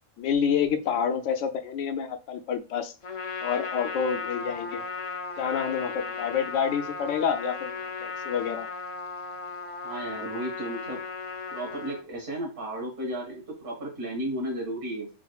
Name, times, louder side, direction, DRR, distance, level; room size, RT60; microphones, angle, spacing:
voice 1, 0.2-2.9 3.4-4.8 5.4-8.7, left 7 dB, 85° left, 7 dB, 1.0 m, -28 dB
Trumpet, 3.0-12.0, left 5 dB, 55° left, 0.3 m, -36 dB
voice 2, 9.8-11.0 11.5-15.1, right 1 dB, 45° right, -2 dB, 1.9 m, -34 dB
4.9 x 2.5 x 2.3 m, 0.34 s
omnidirectional pair, 1.2 m